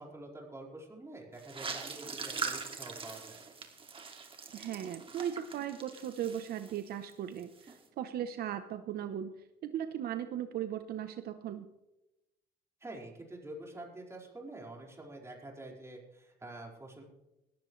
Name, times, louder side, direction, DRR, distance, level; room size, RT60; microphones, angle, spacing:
voice 1, 0.0-3.4 12.8-17.0, right 2 dB, 15° right, -2 dB, 4.9 m, -47 dB
sound 1, 1.4-7.1 7.4-7.8, right 5 dB, 30° right, 2.3 m, -42 dB
voice 2, 4.5-9.3 9.6-11.7, right 10 dB, 65° right, 9 dB, 0.9 m, -37 dB
19.0 x 14.5 x 3.3 m, 0.96 s
cardioid pair, 110°, 17 cm